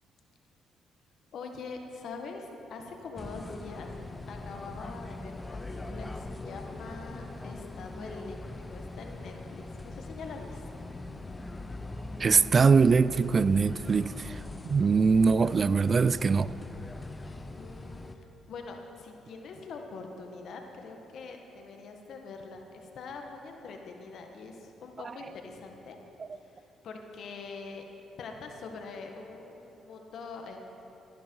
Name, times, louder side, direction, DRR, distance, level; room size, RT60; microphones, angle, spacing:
voice 1, 1.3-3.9 4.3-10.9 17.2-26.0 26.3-27.8 28.2-30.6, left 4 dB, 70° left, 3 dB, 1.4 m, -44 dB
sound 1, 3.2-18.2, left 2 dB, 20° left, 0.6 m, -42 dB
voice 2, 12.2-16.5, right 5 dB, 40° right, 16 dB, 0.3 m, -23 dB
16.5 x 10.5 x 4.6 m, 3.0 s
cardioid pair, 90°, 0 cm